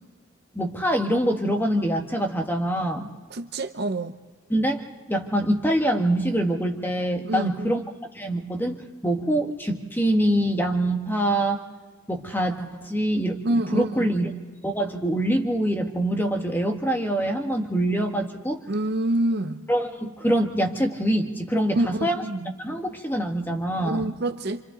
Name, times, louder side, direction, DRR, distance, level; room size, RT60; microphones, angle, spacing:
voice 1, 0.5-3.1 4.5-7.8 8.1-11.6 12.1-14.3 14.6-18.6 19.7-22.2 22.6-24.1, right 1 dB, 10° left, 1.5 m, -25 dB
voice 2, 3.3-4.1 7.2-7.7 13.4-14.1 18.7-19.6 21.8-22.5 23.8-24.6, right 1 dB, 50° right, 0.7 m, -26 dB
29.0 x 26.0 x 3.9 m
head